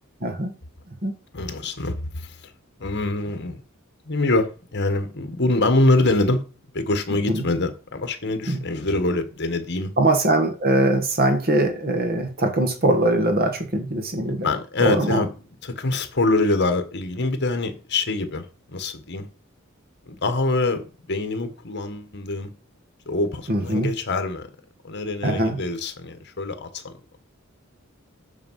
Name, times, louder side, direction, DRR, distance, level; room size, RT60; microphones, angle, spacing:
voice 1, 0.2-0.5 1.0-1.1 7.3-7.4 8.5-8.6 10.0-14.5 14.8-15.2 23.5-23.9 25.2-25.6, right 1 dB, 45° right, 1.7 m, -21 dB
voice 2, 1.3-2.3 2.8-3.6 4.1-6.4 6.7-9.9 14.2-15.3 15.6-18.5 18.7-19.3 20.1-22.5 23.0-24.5 24.8-27.2, left 2 dB, 55° left, 1.7 m, -24 dB
9.3 x 4.8 x 7.5 m
head